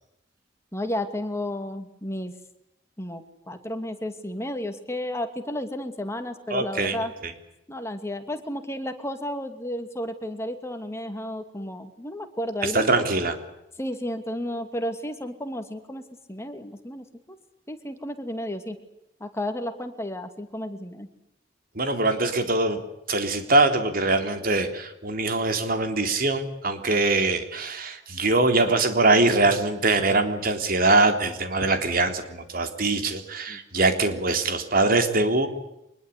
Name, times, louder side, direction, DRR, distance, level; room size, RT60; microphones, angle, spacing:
voice 1, 0.7-2.3 3.0-7.1 7.7-12.9 13.8-17.4 17.7-18.8 19.2-21.1 33.5-33.6, left 1 dB, 15° left, 7 dB, 2.7 m, -32 dB
voice 2, 6.5-7.0 7.2-7.3 12.6-13.3 21.8-22.8 23.1-35.5, right 2 dB, 55° right, 7 dB, 3.7 m, -23 dB
25.0 x 21.5 x 8.4 m, 0.84 s
head